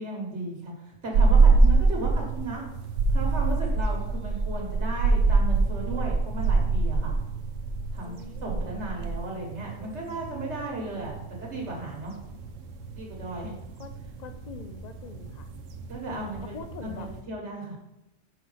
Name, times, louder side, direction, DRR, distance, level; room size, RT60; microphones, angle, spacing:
voice 1, 0.0-2.6 3.1-7.1 7.9-12.1 12.9-13.5 15.9-16.5 16.8-17.8, right 2 dB, 65° right, -1 dB, 1.6 m, -35 dB
sound 1, 1.1-17.2, right 3 dB, 85° right, 1.0 m, -26 dB
voice 2, 8.0-9.1 13.8-15.5 16.1-17.1, left 6 dB, 70° left, 8 dB, 0.4 m, -44 dB
5.2 x 4.5 x 5.5 m, 0.88 s
omnidirectional pair, 1.3 m